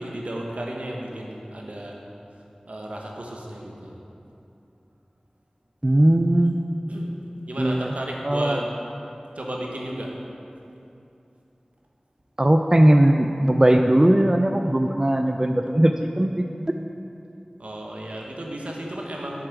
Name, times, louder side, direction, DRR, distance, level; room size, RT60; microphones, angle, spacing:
voice 1, 0.0-2.0 2.7-4.0 6.9-7.1 7.5-8.6 9.3-10.2 17.6-19.5, right 1 dB, 70° right, -1 dB, 1.1 m, -33 dB
voice 2, 5.8-6.6 7.6-7.9 8.2-8.6 12.4-16.4, right 1 dB, 25° right, 5 dB, 0.3 m, -19 dB
7.1 x 6.6 x 4.7 m, 2.7 s
wide cardioid pair, 40°, 2 cm